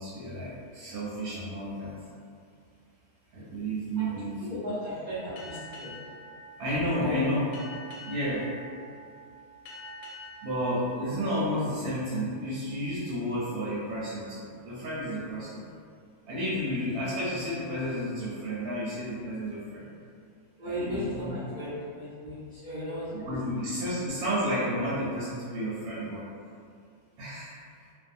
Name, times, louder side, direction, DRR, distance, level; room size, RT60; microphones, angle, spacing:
voice 1, 0.0-1.9 3.3-4.3 6.6-7.4 8.1-8.5 10.4-15.6 16.3-19.9 20.7-21.3 23.1-26.3 27.2-27.5, equal, 80° right, -8 dB, 1.1 m, -31 dB
voice 2, 4.0-5.9 6.9-7.2 20.6-23.3, equal, 45° right, -14 dB, 0.7 m, -36 dB
Boat Water vehicle, 5.4-12.4, equal, 70° left, 0.9 m, -47 dB
2.5 x 2.2 x 2.5 m, 2.2 s
omnidirectional pair, 1.5 m